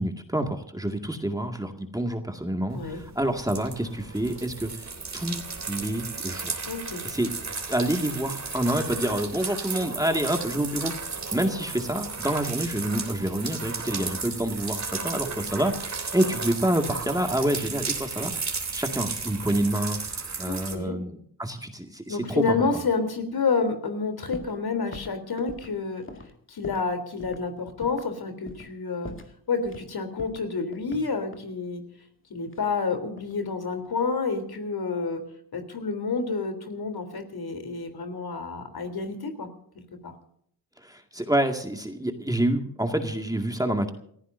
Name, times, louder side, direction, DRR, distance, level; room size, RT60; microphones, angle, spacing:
voice 1, 0.0-4.9 5.1-5.4 5.7-6.6 7.0-7.3 7.7-10.9 11.3-18.3 18.7-20.0 20.4-22.6 40.8-43.9, right 1 dB, 10° right, 4 dB, 2.1 m, -27 dB
sound 1, 2.7-20.8, right 4 dB, 40° right, 3.3 m, -34 dB
voice 2, 6.7-7.0 20.5-20.9 22.1-26.0 26.5-29.1 29.5-31.8 32.3-35.2 35.5-39.5 40.0-40.1, left 4 dB, 60° left, 7 dB, 3.6 m, -29 dB
sound 2, 24.3-24.6 24.9-26.9 27.2-27.4 27.8-28.1 28.5-28.8 29.0-29.9 30.2-31.5 32.5-33.4 33.7-34.2, left 2 dB, 30° left, 2.2 m, -43 dB
29.0 x 15.0 x 2.7 m, 0.65 s
cardioid pair, 85°, 42 cm